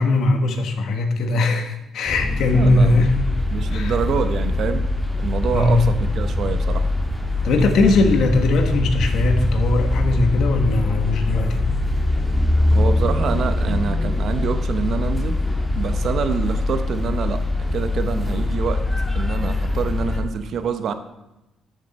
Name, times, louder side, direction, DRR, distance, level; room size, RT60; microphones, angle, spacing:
voice 1, 0.0-3.2 3.7-4.0 5.5-5.8 7.4-11.7, left 2 dB, 75° left, 5 dB, 1.3 m, -19 dB
sound 1, 2.1-20.2, left 2 dB, 5° left, 2.8 m, -22 dB
voice 2, 2.4-3.1 3.5-4.9 5.2-6.9 12.7-15.4 15.8-17.4 17.7-18.8 19.1-20.9, right 6 dB, 65° right, 9 dB, 0.9 m, -26 dB
13.5 x 6.5 x 4.2 m, 0.95 s
cardioid pair, 90°, 0 cm